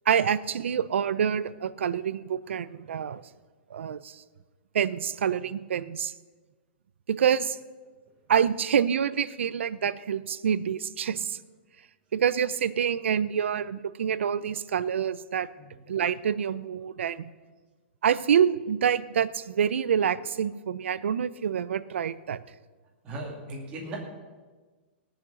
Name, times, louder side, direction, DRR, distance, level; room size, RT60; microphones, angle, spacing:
voice 1, 0.1-3.2 3.7-4.2 4.7-6.1 7.1-7.6 8.3-11.4 12.1-15.5 15.9-17.3 18.0-22.4, right 8 dB, 80° right, 16 dB, 0.6 m, -27 dB
voice 2, 23.0-24.0, right 2 dB, 15° right, -2 dB, 2.3 m, -37 dB
18.0 x 6.8 x 6.9 m, 1.3 s
hypercardioid pair, 175°, 6 cm